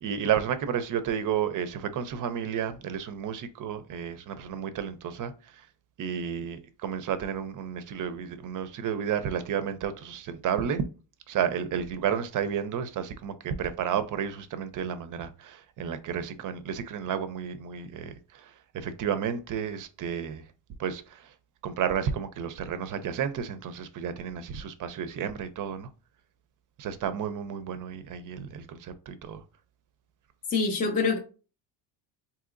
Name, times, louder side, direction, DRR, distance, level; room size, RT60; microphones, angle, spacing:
voice 1, 0.0-5.3 6.0-10.8 11.3-18.4 18.7-20.4 20.8-21.3 21.6-25.9 26.8-29.4, right 8 dB, 45° right, 0.4 m, -32 dB
voice 2, 30.5-31.2, left 4 dB, 20° left, 0.3 m, -25 dB
3.7 x 2.8 x 2.5 m
cardioid pair, 130°, 47 cm